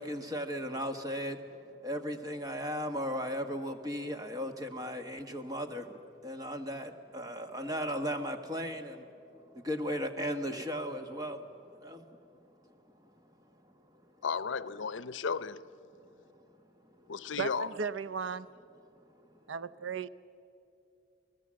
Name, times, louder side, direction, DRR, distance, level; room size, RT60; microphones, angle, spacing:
voice 1, 0.0-1.4 1.8-9.1 9.5-11.4 11.8-12.1, equal, 20° right, 1.4 m, -36 dB
voice 2, 14.2-15.6 17.1-17.7, left 5 dB, 80° left, 0.6 m, -34 dB
voice 3, 17.4-18.5 19.5-20.1, right 5 dB, 85° right, 0.6 m, -35 dB
29.5 x 19.0 x 7.6 m
head